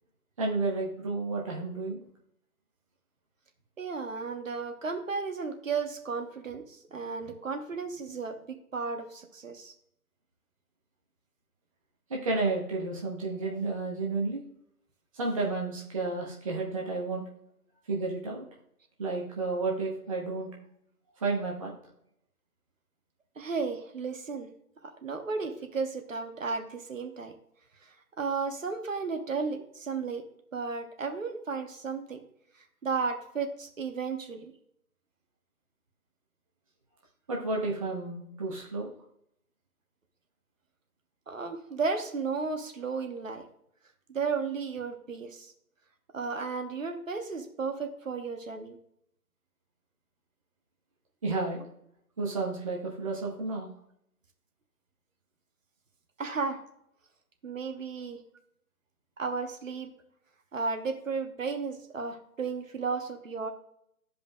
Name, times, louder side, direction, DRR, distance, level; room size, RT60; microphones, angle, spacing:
voice 1, 0.4-2.0 12.1-14.4 15.1-17.2 17.9-18.4 19.0-20.5 21.2-21.7 37.3-38.9 51.2-51.6 52.2-53.7, right 3 dB, 20° right, -2 dB, 0.9 m, -31 dB
voice 2, 3.8-8.4 8.7-9.7 23.4-24.5 24.8-27.3 28.2-30.2 30.5-32.2 32.8-34.5 41.3-43.4 44.1-45.5 46.1-48.8 56.2-56.6 57.4-58.2 59.2-59.9 60.5-63.5, right 4 dB, 55° right, 5 dB, 1.2 m, -34 dB
13.0 x 5.1 x 2.3 m, 0.73 s
figure-of-eight pair, 150°, 46 cm